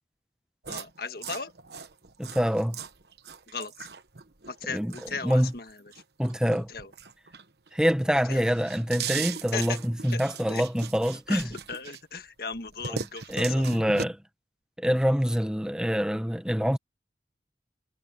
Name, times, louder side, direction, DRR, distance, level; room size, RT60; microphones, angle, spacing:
sound 1, 0.6-7.8 8.1-12.2 12.5-14.0, right 7 dB, 70° right, 1.2 m, -39 dB
voice 1, 0.7-1.5 3.5-3.9 4.5-5.8 6.7-6.9 8.3-8.4 9.5-9.8 10.1-10.2 10.5-10.6 11.3-13.7, left 5 dB, 60° left, 1.7 m, -36 dB
voice 2, 2.2-2.8 4.7-4.9 5.2-5.5 6.2-6.7 7.7-11.5 12.9-14.2 14.8-16.8, equal, 5° right, 1.1 m, -25 dB
head